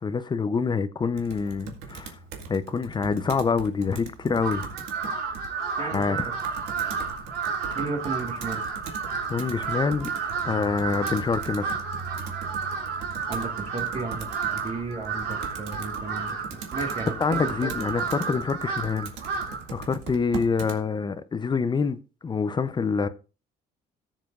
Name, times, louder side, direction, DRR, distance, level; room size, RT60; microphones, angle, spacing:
voice 1, 0.0-2.2 2.5-4.6 5.9-6.3 9.3-10.1 10.4-11.7 17.2-23.1, left 5 dB, 25° left, 0.6 m, -26 dB
Computer keyboard, 1.1-20.8, right 5 dB, 90° right, 2.0 m, -41 dB
Crow, 4.3-19.7, right 5 dB, 75° right, 3.5 m, -32 dB
voice 2, 7.7-8.6 13.3-17.9, right 3 dB, 40° right, 1.8 m, -34 dB
17.5 x 7.5 x 2.5 m
cardioid pair, 110°, 17 cm